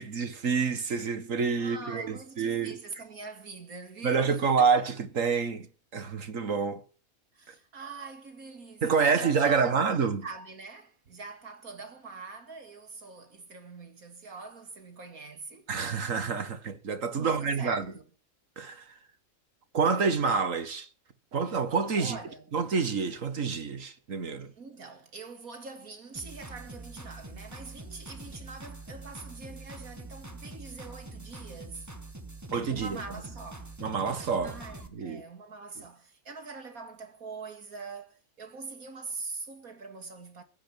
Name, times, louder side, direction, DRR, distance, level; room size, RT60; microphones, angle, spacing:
voice 1, 0.0-3.0 4.0-6.8 7.5-7.6 8.8-10.3 15.7-17.9 18.6-18.9 19.7-20.9 21.3-22.2 22.5-24.5 32.5-33.0 33.8-34.6 34.9-35.2 35.8-35.9, right 5 dB, 65° right, 1.9 m, -28 dB
voice 2, 1.6-4.7 7.3-15.7 17.2-18.0 22.0-22.4 24.6-31.9 32.7-33.7 34.4-40.4, right 4 dB, 80° right, 2.9 m, -43 dB
sound 1, 26.1-34.9, right 2 dB, 10° right, 1.9 m, -44 dB
16.5 x 9.6 x 8.8 m
omnidirectional pair, 1.5 m